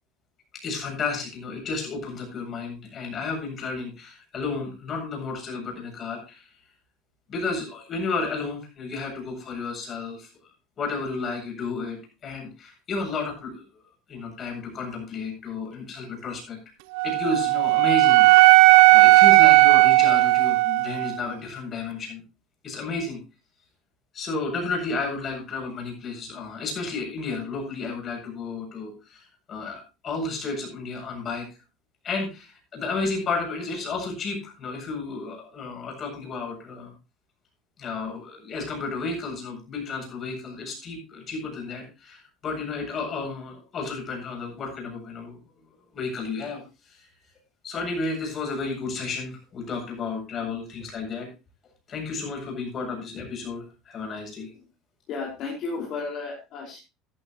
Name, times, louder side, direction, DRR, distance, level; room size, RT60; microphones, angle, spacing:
voice 1, 0.6-6.5 7.3-10.3 10.8-13.6 14.1-16.6 17.0-22.2 22.6-23.2 24.1-31.5 32.0-36.9 37.8-45.4 45.9-46.6 47.6-51.3 51.9-54.5, left 3 dB, 35° left, 2 dB, 7.8 m, -32 dB
Wind instrument woodwind instrument, 16.9-21.2, right 21 dB, 80° right, 0.5 m, -15 dB
voice 2, 55.1-56.8, left 4 dB, 55° left, -2 dB, 5.1 m, -33 dB
15.0 x 11.5 x 3.1 m, 0.28 s
supercardioid pair, 115°, 0 cm